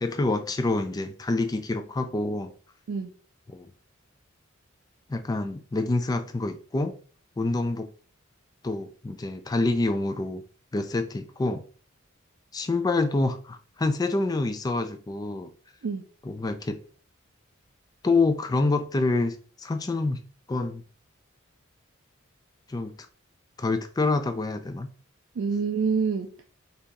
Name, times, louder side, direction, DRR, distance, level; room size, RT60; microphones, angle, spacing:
voice 1, 0.0-2.5 3.5-3.7 5.1-6.9 7.4-7.9 8.6-10.4 10.7-11.6 12.5-15.5 16.2-16.8 18.0-20.2 20.5-20.8 22.7-22.9 23.6-24.9, left 2 dB, 20° left, 0.3 m, -27 dB
voice 2, 25.4-26.5, right 5 dB, 65° right, 0.4 m, -27 dB
2.8 x 2.6 x 3.7 m
head